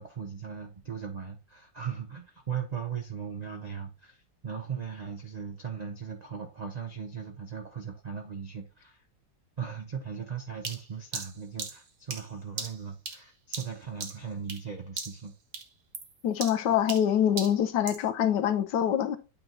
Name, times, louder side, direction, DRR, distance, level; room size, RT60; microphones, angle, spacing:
voice 1, 0.0-9.0 9.6-15.3, right 7 dB, 80° right, 0.3 m, -38 dB
sound 1, 10.6-14.7 15.0-15.3 15.5-18.1, right 5 dB, 60° right, 1.6 m, -39 dB
voice 2, 16.2-19.2, left 9 dB, 75° left, 1.2 m, -25 dB
8.6 x 2.9 x 3.8 m
omnidirectional pair, 1.9 m